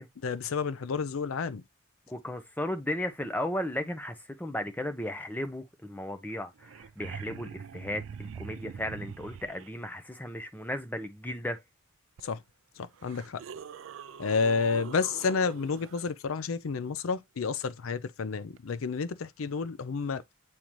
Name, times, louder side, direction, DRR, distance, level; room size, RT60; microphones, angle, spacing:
voice 1, 0.2-1.6 12.2-12.4 12.8-13.4 14.2-20.2, left 5 dB, 75° left, 0.5 m, -30 dB
voice 2, 2.1-11.6, left 1 dB, 10° left, 0.8 m, -35 dB
sound 1, 6.3-6.4 6.6-9.7 12.2-12.3 12.9-16.0 18.6-18.7, right 6 dB, 65° right, 0.4 m, -43 dB
8.7 x 3.8 x 3.0 m
head